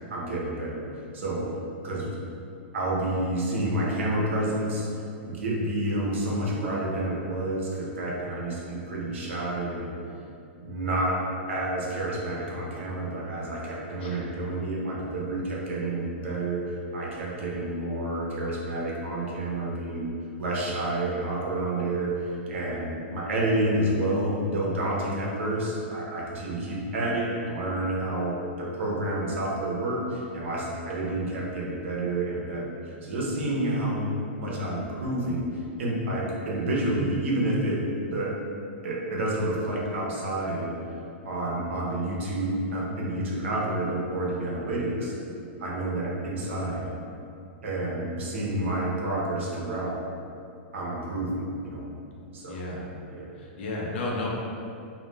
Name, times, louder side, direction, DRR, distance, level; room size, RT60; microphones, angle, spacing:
voice 1, 0.1-0.9 1.1-1.5 1.8-2.1 2.7-4.9 5.2-10.0 10.6-11.2 11.5-20.1 20.4-35.5 35.8-37.8 38.1-38.3 38.8-40.7 41.2-45.1 45.6-47.0 47.6-49.9 50.7-51.9 52.3-52.6 53.1-53.3, right 1 dB, 85° right, -4 dB, 0.7 m, -29 dB
voice 2, 52.5-52.9 53.3-54.3, left 2 dB, 65° left, -3 dB, 0.6 m, -33 dB
2.2 x 2.0 x 3.2 m, 2.5 s
hypercardioid pair, 150°, 6 cm